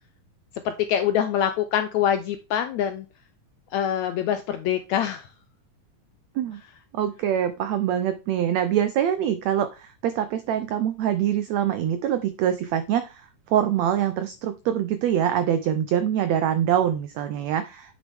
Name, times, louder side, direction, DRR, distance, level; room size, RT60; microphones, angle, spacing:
voice 1, 0.6-3.1 3.7-5.3, left 9 dB, 80° left, 9 dB, 1.6 m, -24 dB
voice 2, 6.9-17.9, right 10 dB, 90° right, 10 dB, 1.5 m, -24 dB
8.1 x 6.3 x 3.5 m, 0.29 s
omnidirectional pair, 3.9 m